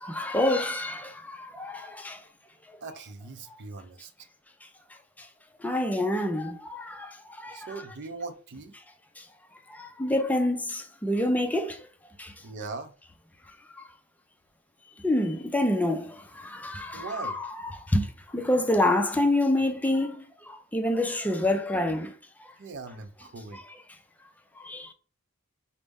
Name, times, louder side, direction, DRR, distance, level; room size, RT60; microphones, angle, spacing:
voice 1, 0.0-2.2 5.2-5.3 5.6-7.7 9.2-9.3 9.7-11.8 12.2-12.3 15.0-18.1 18.3-22.1 23.5-23.6 24.6-24.9, left 1 dB, 5° left, 0.4 m, -27 dB
voice 2, 2.8-4.1 7.5-8.7 12.4-13.0 16.9-17.4 22.6-23.6, right 3 dB, 55° right, 0.5 m, -40 dB
5.0 x 2.1 x 3.4 m
head